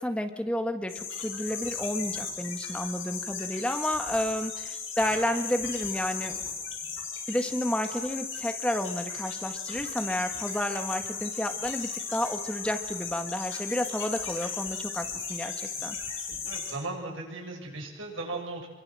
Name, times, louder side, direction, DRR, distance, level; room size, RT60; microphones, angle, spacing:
voice 1, 0.0-6.4 7.3-16.0, left 1 dB, 5° left, 6 dB, 1.7 m, -31 dB
sound 1, 0.9-16.7, left 6 dB, 85° left, 8.0 m, -36 dB
voice 2, 16.5-18.7, right 2 dB, 80° right, 0 dB, 7.9 m, -37 dB
27.0 x 24.0 x 7.7 m, 1.2 s
head